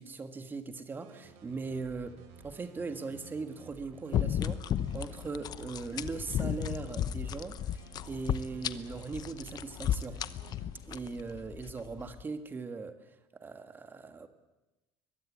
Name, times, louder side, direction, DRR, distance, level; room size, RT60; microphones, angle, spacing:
voice 1, 0.0-2.2 2.4-10.2 10.8-13.0 13.3-14.3, right 4 dB, 20° right, 9 dB, 1.7 m, -40 dB
sound 1, 1.0-10.7, right 5 dB, 70° right, 5.0 m, -54 dB
sound 2, 4.1-12.2, left 10 dB, 35° left, 0.9 m, -34 dB
23.5 x 22.0 x 8.6 m, 1.0 s
cardioid pair, 165°, 11 cm